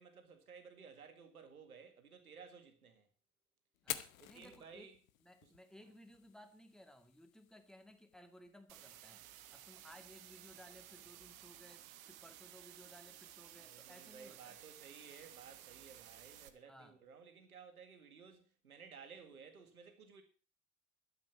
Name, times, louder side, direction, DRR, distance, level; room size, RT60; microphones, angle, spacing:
voice 1, 0.0-3.1 4.2-5.0 5.4-5.5 13.6-20.2, right 6 dB, 80° right, 2.1 m, -56 dB
Fire, 3.7-11.7, left 13 dB, 70° left, 1.0 m, -52 dB
voice 2, 3.8-4.9 5.2-9.2 9.5-14.6 16.7-17.0, equal, ahead, 2.1 m, -59 dB
sound 1, 8.7-16.5, right 12 dB, 65° right, 1.3 m, -56 dB
12.0 x 8.2 x 7.1 m
figure-of-eight pair, 55°, 43 cm